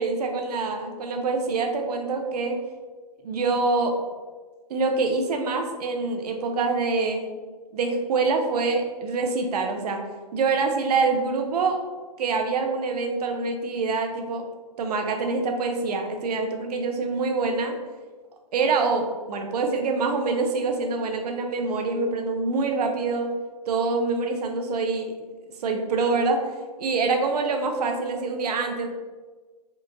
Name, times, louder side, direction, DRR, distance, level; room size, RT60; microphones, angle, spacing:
voice 1, 0.0-2.6 3.2-4.0 4.7-7.3 7.7-10.0 10.3-11.8 12.2-14.5 14.8-17.8 18.5-23.3 23.7-25.1 25.6-26.5 26.8-28.9, right 4 dB, 70° right, 4 dB, 0.7 m, -25 dB
4.5 x 2.5 x 2.6 m, 1.3 s
hypercardioid pair, 140°, 21 cm